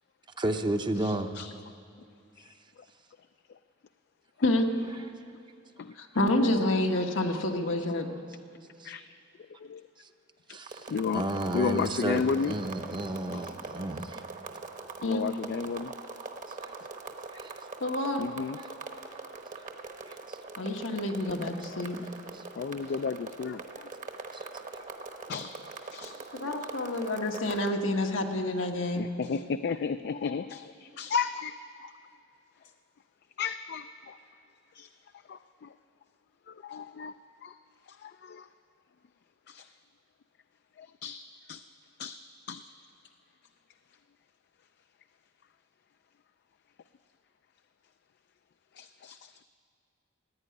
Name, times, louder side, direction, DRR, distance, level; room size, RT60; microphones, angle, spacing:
voice 1, 0.4-1.3 8.8-8.9 10.5-10.8 11.1-14.2 17.3-17.5, right 1 dB, 25° right, 7 dB, 0.6 m, -31 dB
voice 2, 1.0-1.5 5.8-5.9 6.5-6.6 8.8-9.0 9.6-9.8 10.9-12.6 13.3-13.4 15.0-15.9 18.2-18.6 21.7-21.8 22.6-23.9 25.3-25.5 25.9-26.1 26.4-26.6 29.0-31.5 31.8-31.9 33.4-34.2 34.7-34.9 35.3-35.7 36.5-37.1 37.4-37.6 37.9-38.5 39.5-39.7 40.8-41.6 42.0-42.2 42.5-42.7 48.8-49.4, left 5 dB, 55° left, 10 dB, 0.3 m, -33 dB
voice 3, 6.0-8.1 15.0-15.2 17.8-18.2 20.6-22.0 26.3-29.1, left 1 dB, 85° left, 3 dB, 1.3 m, -28 dB
sound 1, 10.6-27.7, right 3 dB, 40° right, 1.0 m, -43 dB
16.0 x 9.3 x 9.7 m, 2.4 s
head